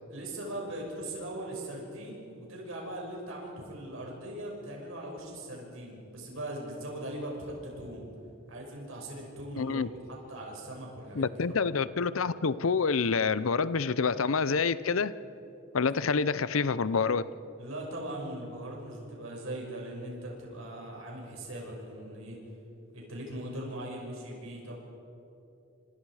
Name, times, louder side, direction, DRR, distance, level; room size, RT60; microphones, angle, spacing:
voice 1, 0.1-8.0 8.5-9.8 10.1-11.4 17.6-22.4 22.9-24.7, right 1 dB, 80° right, -1 dB, 6.0 m, -40 dB
voice 2, 9.6-9.9 11.1-15.1 15.7-17.3, left 5 dB, 80° left, 16 dB, 0.7 m, -27 dB
27.0 x 26.5 x 4.9 m, 2.8 s
head